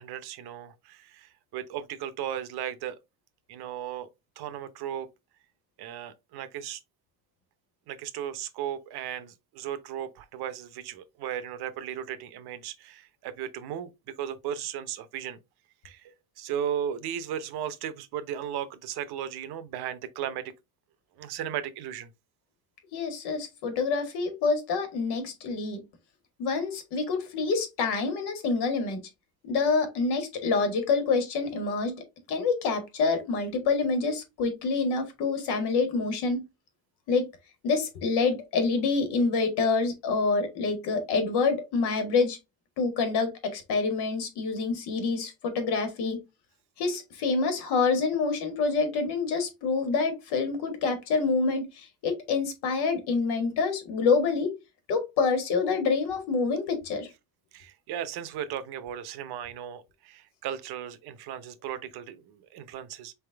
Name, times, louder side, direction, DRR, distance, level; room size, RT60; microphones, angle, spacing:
voice 1, 0.0-3.0 3.5-4.1 4.4-5.1 5.8-6.8 7.9-13.9 14.2-15.4 15.8-20.5 21.2-22.1 57.5-63.1, right 10 dB, 75° right, 0.8 m, -36 dB
voice 2, 22.9-25.8 26.4-29.0 29.4-31.9 32.3-36.4 37.1-37.3 37.6-42.4 42.8-46.2 46.8-54.5 54.9-57.1, left 4 dB, 90° left, 1.7 m, -27 dB
4.2 x 3.5 x 3.3 m
cardioid pair, 160°, 38 cm